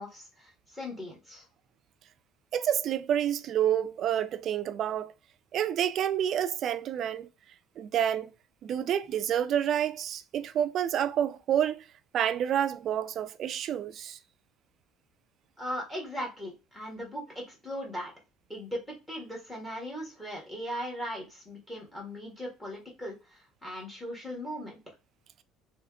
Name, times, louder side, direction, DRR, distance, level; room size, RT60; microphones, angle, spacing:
voice 1, 0.0-1.4 15.6-18.1 18.5-24.8, equal, 10° left, 1.5 m, -38 dB
voice 2, 2.5-5.1 5.5-7.3 7.8-8.3 8.6-11.8 12.1-14.2, right 10 dB, 45° right, 0.3 m, -28 dB
3.3 x 2.9 x 3.5 m
cardioid pair, 145°, 0 cm